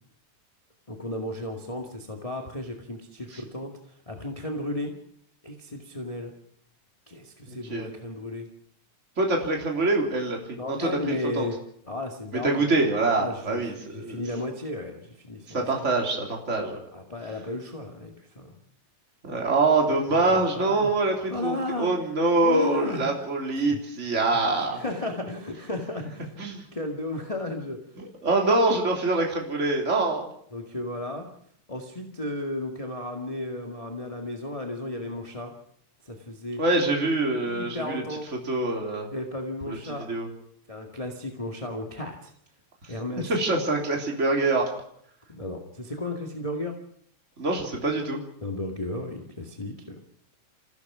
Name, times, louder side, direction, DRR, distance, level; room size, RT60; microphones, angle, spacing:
voice 1, 0.9-3.7 4.0-4.9 5.4-6.3 7.1-8.5 10.6-11.6 11.8-12.7 13.1-15.8 16.9-18.6 20.1-20.9 21.3-21.9 22.4-23.1 23.5-23.8 24.5-26.4 26.7-27.8 30.5-31.3 31.7-35.5 36.0-36.6 37.4-38.3 39.1-40.1 40.7-42.3 42.9-43.3 45.3-46.8 48.4-50.0, left 2 dB, 15° left, 2 dB, 1.7 m, -34 dB
voice 2, 7.5-7.9 9.2-10.4 10.7-11.5 12.3-14.2 15.5-16.9 19.2-24.8 26.4-26.6 28.0-30.3 36.6-38.0 38.5-39.1 39.7-39.8 40.1-40.3 43.2-44.7 47.4-48.2, right 2 dB, 25° right, 0 dB, 3.6 m, -25 dB
27.0 x 16.0 x 6.2 m, 0.67 s
omnidirectional pair, 3.4 m